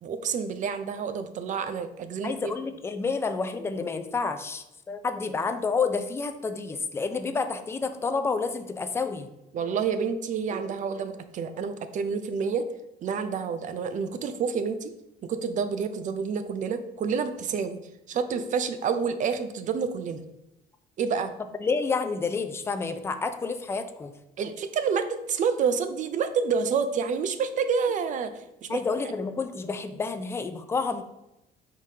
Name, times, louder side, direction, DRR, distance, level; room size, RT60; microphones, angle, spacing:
voice 1, 0.0-2.5 9.5-12.7 13.0-15.0 15.2-17.8 18.1-20.2 21.0-21.3 24.4-28.8, right 6 dB, 50° right, 10 dB, 0.4 m, -28 dB
voice 2, 2.2-9.3 21.6-24.1 28.7-31.0, left 4 dB, 15° left, 8 dB, 0.3 m, -29 dB
4.8 x 3.6 x 2.8 m, 0.88 s
cardioid pair, 110°, 17 cm